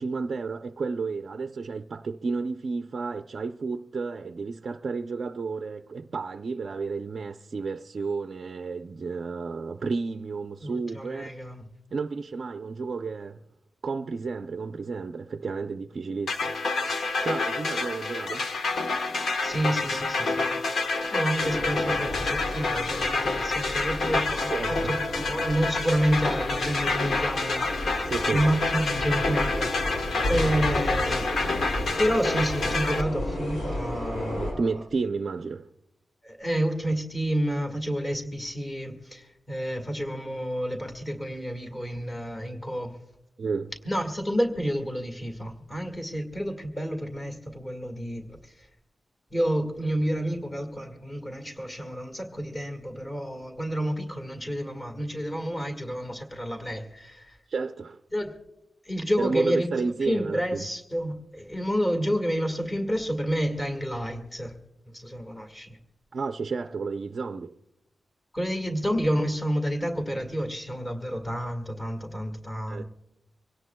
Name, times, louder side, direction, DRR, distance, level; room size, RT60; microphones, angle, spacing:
voice 1, 0.0-11.3 11.9-13.4 13.8-18.5 24.5-24.9 28.0-28.5 34.3-35.7 43.4-43.7 57.5-58.0 59.2-60.7 66.1-67.6 72.7-72.8, right 4 dB, 45° right, 0.5 m, -32 dB
voice 2, 10.6-11.7 19.4-27.7 27.9-31.3 32.0-34.8 36.2-43.0 43.9-48.2 49.3-57.3 58.1-58.3 58.9-59.7 60.0-64.5 64.9-65.8 68.3-72.8, equal, 15° left, 1.7 m, -29 dB
sound 1, 16.3-33.0, left 3 dB, 65° left, 1.2 m, -28 dB
sound 2, 21.4-34.5, left 1 dB, 90° left, 7.2 m, -33 dB
25.0 x 17.5 x 2.2 m
wide cardioid pair, 175°, 0 cm